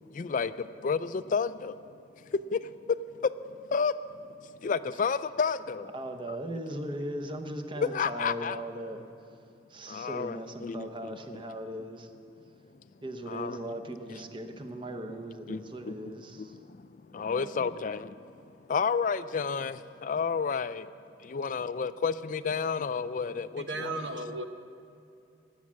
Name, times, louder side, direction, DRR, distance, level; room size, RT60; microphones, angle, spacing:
voice 1, 0.1-1.9 2.2-3.9 4.4-5.9 6.3-6.4 7.8-8.6 9.9-11.4 13.3-13.6 14.5-14.6 15.5-20.9 21.2-24.0, left 5 dB, 45° left, 14 dB, 0.4 m, -31 dB
voice 2, 5.9-9.0 9.7-12.1 13.0-16.5 17.1-17.7, right 1 dB, 25° right, 6 dB, 0.8 m, -38 dB
voice 3, 23.6-24.5, right 2 dB, 80° right, 7 dB, 1.0 m, -35 dB
19.0 x 7.4 x 7.4 m, 2.6 s
head